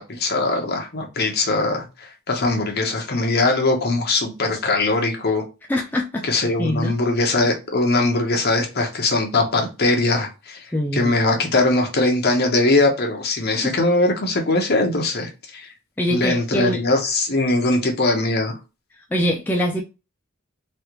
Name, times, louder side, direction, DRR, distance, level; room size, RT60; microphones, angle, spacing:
voice 1, 0.0-5.4 6.2-10.7 10.9-15.7 16.1-18.5, left 2 dB, 45° left, 0.9 m, -21 dB
voice 2, 5.7-6.9 10.7-11.1 13.6-13.8 16.0-16.8 19.1-19.8, equal, 10° left, 0.3 m, -23 dB
3.2 x 2.4 x 2.9 m
head